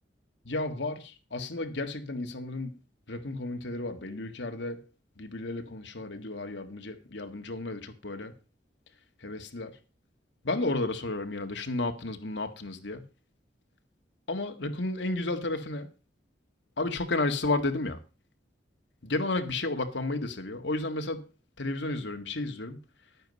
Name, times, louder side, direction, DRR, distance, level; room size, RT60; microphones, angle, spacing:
voice 1, 0.4-2.8 3.1-4.8 5.2-8.3 9.2-9.8 10.4-13.0 14.3-15.9 16.8-18.0 19.0-21.3 21.6-22.8, left 2 dB, 75° left, 1.7 m, -32 dB
11.0 x 9.1 x 5.3 m
head